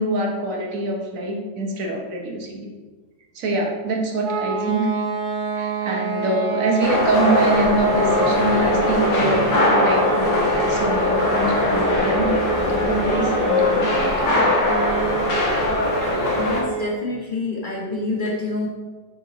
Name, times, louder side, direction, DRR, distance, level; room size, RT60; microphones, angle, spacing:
voice 1, 0.0-2.7 3.3-4.9 5.5-14.7, right 2 dB, 55° right, 0 dB, 1.0 m, -25 dB
sound 1, 4.2-17.0, right 4 dB, 80° right, 0.8 m, -27 dB
sound 2, 6.8-16.6, left 2 dB, 80° left, 2.3 m, -21 dB
voice 2, 16.4-18.7, left 2 dB, 60° left, -3 dB, 0.5 m, -27 dB
6.2 x 4.2 x 3.9 m, 1.3 s
omnidirectional pair, 2.4 m